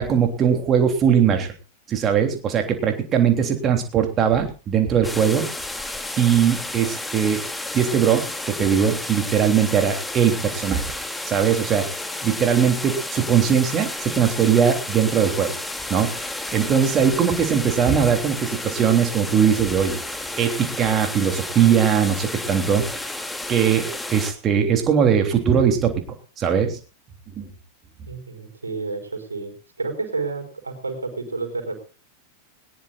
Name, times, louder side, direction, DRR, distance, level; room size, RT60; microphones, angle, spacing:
voice 1, 0.0-1.5 1.9-5.5 6.2-7.4 7.7-10.8 11.2-11.9 12.2-15.5 15.9-20.0 20.4-23.1 23.5-26.0 26.4-26.8 27.4-27.5, right 8 dB, 30° right, 5 dB, 3.3 m, -20 dB
sound 1, 5.0-24.3, left 2 dB, 5° left, 2.8 m, -32 dB
voice 2, 28.1-31.8, right 3 dB, 75° right, 6 dB, 4.8 m, -30 dB
20.5 x 19.5 x 2.5 m, 0.36 s
figure-of-eight pair, 90°, 0 cm